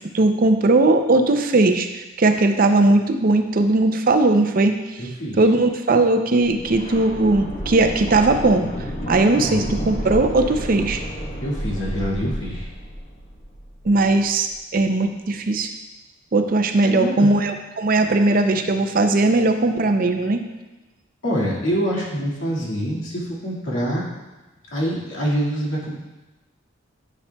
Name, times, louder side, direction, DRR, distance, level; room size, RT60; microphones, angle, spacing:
voice 1, 0.0-4.8 5.4-8.7 9.1-11.0 13.8-15.7 16.3-20.4, right 2 dB, 45° right, 7 dB, 0.5 m, -18 dB
voice 2, 5.0-5.4 9.4-9.8 11.4-12.7 16.8-17.3 21.2-24.0 24.7-26.0, equal, 85° left, -4 dB, 1.9 m, -25 dB
sound 1, 6.4-14.2 14.5-14.6, equal, 40° left, 1.1 m, -31 dB
9.8 x 6.5 x 2.3 m, 1.1 s
head